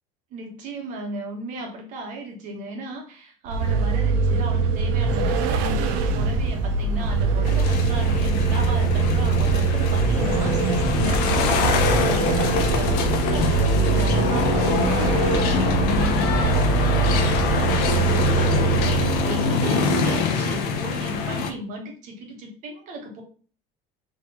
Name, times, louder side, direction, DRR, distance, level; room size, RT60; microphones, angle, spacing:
voice 1, 0.3-18.1 18.3-23.2, right 1 dB, 45° right, 1 dB, 1.2 m, -35 dB
Vehicle, 3.5-19.4, right 5 dB, 70° right, 0.5 m, -23 dB
sound 1, 5.1-11.9, right 1 dB, 20° right, 1.1 m, -35 dB
sound 2, 7.4-21.5, left 4 dB, 60° left, 0.7 m, -24 dB
3.7 x 3.2 x 2.8 m, 0.40 s
cardioid pair, 180°, 17 cm